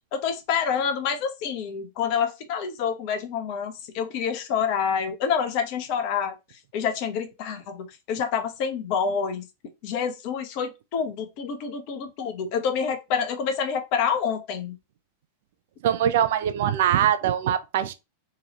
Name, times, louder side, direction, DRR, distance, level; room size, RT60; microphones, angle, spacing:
voice 1, 0.1-6.3 6.7-9.4 9.8-14.8, left 7 dB, 45° left, 0.6 m, -27 dB
voice 2, 15.8-17.9, right 10 dB, 55° right, 0.3 m, -22 dB
2.8 x 2.3 x 2.9 m
figure-of-eight pair, 90°, 0 cm